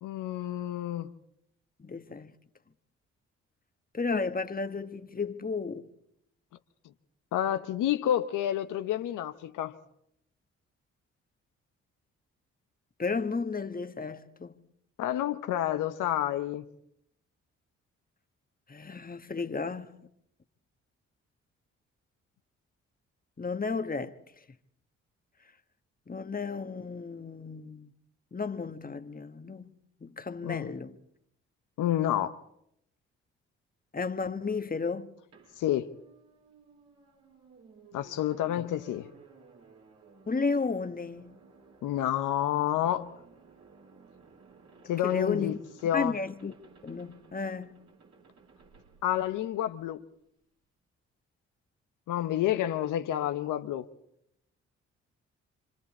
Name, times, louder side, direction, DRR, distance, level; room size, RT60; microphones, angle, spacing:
voice 1, 0.0-1.1 7.3-9.8 15.0-16.6 30.4-30.7 31.8-32.4 35.6-35.9 37.9-39.1 41.8-43.1 44.8-45.5 45.8-46.2 49.0-50.0 52.1-53.9, left 12 dB, 80° left, 0.9 m, -29 dB
voice 2, 1.8-2.3 3.9-5.9 13.0-14.5 18.7-19.9 23.4-24.1 26.1-27.9 28.3-29.7 30.0-31.0 33.9-35.2 40.3-41.4 45.0-45.6 45.9-46.5 46.8-47.8, left 4 dB, 30° left, 1.5 m, -33 dB
sound 1, 35.3-49.9, right 4 dB, 60° right, 5.2 m, -57 dB
27.5 x 25.5 x 4.3 m
supercardioid pair, 50°, 31 cm